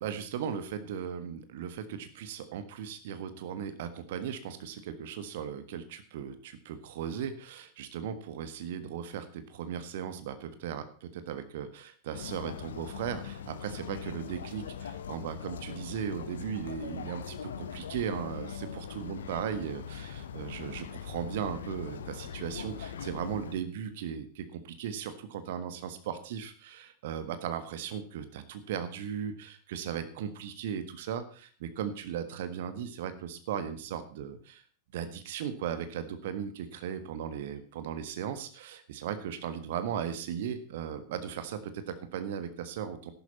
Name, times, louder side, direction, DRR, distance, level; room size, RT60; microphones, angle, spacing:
voice 1, 0.0-34.6 34.9-43.1, right 8 dB, 55° right, 10 dB, 1.6 m, -37 dB
sound 1, 12.1-23.6, left 8 dB, 65° left, 1.0 m, -41 dB
13.0 x 11.5 x 4.2 m, 0.40 s
figure-of-eight pair, 90°, 0 cm